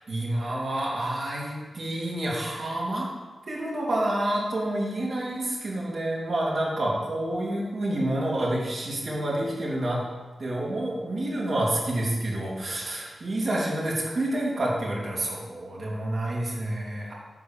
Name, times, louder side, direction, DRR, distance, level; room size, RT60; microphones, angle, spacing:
voice 1, 0.0-3.1 3.5-10.0 10.4-17.1, right 1 dB, 45° right, -4 dB, 2.6 m, -28 dB
9.6 x 4.7 x 7.2 m, 1.3 s
wide cardioid pair, 165°, 0 cm